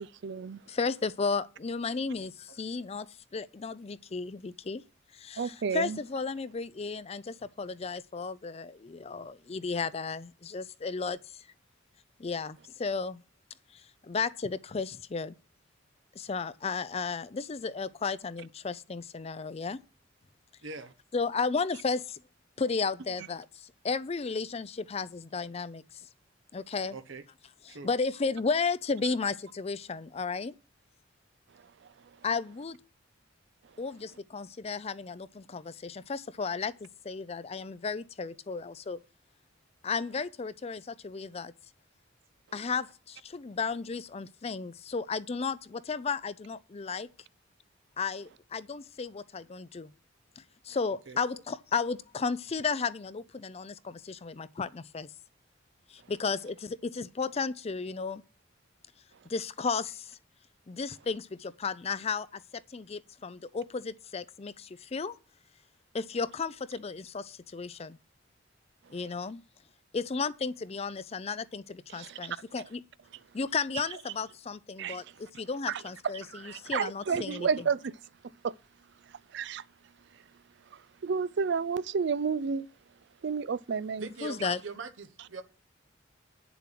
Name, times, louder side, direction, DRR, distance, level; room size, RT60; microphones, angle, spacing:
voice 1, 0.0-0.6 5.4-6.0 71.9-72.2 74.8-75.0 75.7-75.8 76.1-78.0 78.4-78.5 79.3-79.6 81.0-82.7 83.2-84.1, right 6 dB, 60° right, 0.4 m, -31 dB
voice 2, 0.7-2.3 2.6-4.8 5.1-11.4 12.2-13.2 13.7-15.3 16.2-19.8 21.1-22.2 22.6-26.0 26.5-27.0 27.7-30.5 32.2-32.8 33.8-39.0 39.8-41.5 42.5-47.1 48.0-49.9 50.4-55.1 55.9-58.2 59.3-60.2 60.7-65.2 65.9-68.0 68.9-69.4 69.9-72.8 73.3-77.5 84.2-84.6, left 4 dB, 30° left, 0.4 m, -34 dB
voice 3, 20.6-20.9 26.9-27.2 27.7-27.9 51.1-51.2 84.0-85.4, right 4 dB, 80° right, 1.1 m, -42 dB
9.1 x 7.0 x 5.8 m
head